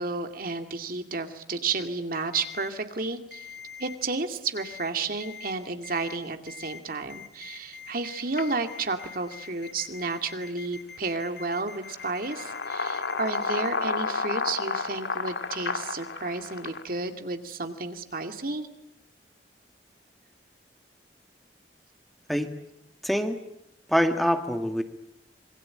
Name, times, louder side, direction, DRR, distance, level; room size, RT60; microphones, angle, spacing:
voice 1, 0.0-3.5 3.8-18.7, right 3 dB, 55° right, 6 dB, 2.3 m, -32 dB
Ringtone, 2.3-2.7 3.3-4.0 4.6-4.9 5.2-5.5 5.8-6.2 6.5-6.8 7.1-13.7, left 7 dB, 65° left, 3.1 m, -44 dB
sound 1, 8.4-8.5 8.9-9.1 11.2-11.3 11.8-16.8, left 4 dB, 90° left, 2.1 m, -31 dB
voice 2, 23.0-23.4 23.9-24.8, equal, ahead, 6 dB, 1.7 m, -24 dB
26.5 x 23.5 x 8.8 m, 0.76 s
head